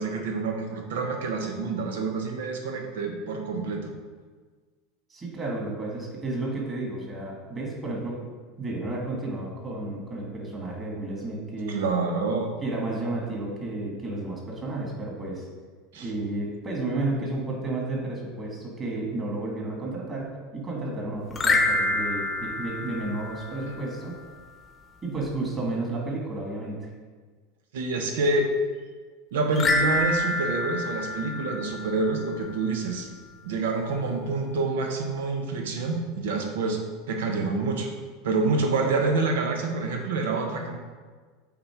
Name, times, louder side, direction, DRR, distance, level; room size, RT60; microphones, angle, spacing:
voice 1, 0.0-3.9 11.7-12.5 15.9-16.1 27.7-28.5 29.3-33.1 33.4-36.8 37.1-37.9 38.2-40.8, right 3 dB, 90° right, 4 dB, 1.1 m, -27 dB
voice 2, 5.1-8.2 8.6-11.8 12.6-15.5 15.9-24.2 25.0-26.8, right 2 dB, 25° right, -2 dB, 2.0 m, -32 dB
sound 1, 21.3-23.8 29.5-32.2, left 2 dB, 20° left, 0.8 m, -27 dB
7.6 x 4.3 x 4.5 m, 1.5 s
supercardioid pair, 135°, 0 cm